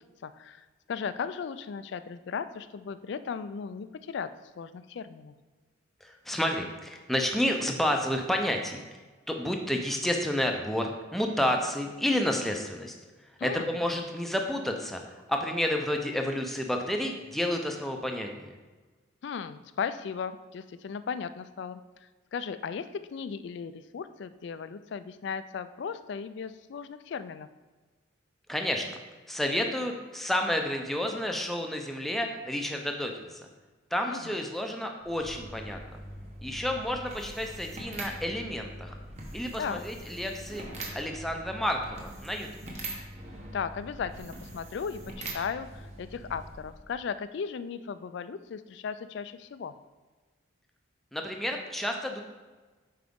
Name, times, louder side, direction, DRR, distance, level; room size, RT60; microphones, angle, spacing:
voice 1, 0.2-5.3 13.4-13.7 19.2-27.5 34.1-34.4 39.6-39.8 43.5-49.7, left 6 dB, 55° left, 13 dB, 0.3 m, -36 dB
voice 2, 6.0-8.8 9.3-12.9 13.4-18.5 28.5-28.9 29.3-33.5 33.9-36.0 36.4-39.0 39.3-40.6 40.9-42.5 51.1-52.2, left 1 dB, ahead, 2 dB, 0.5 m, -30 dB
sound 1, 35.0-47.0, right 1 dB, 35° right, 1.0 m, -43 dB
7.6 x 4.7 x 3.6 m, 1.3 s
head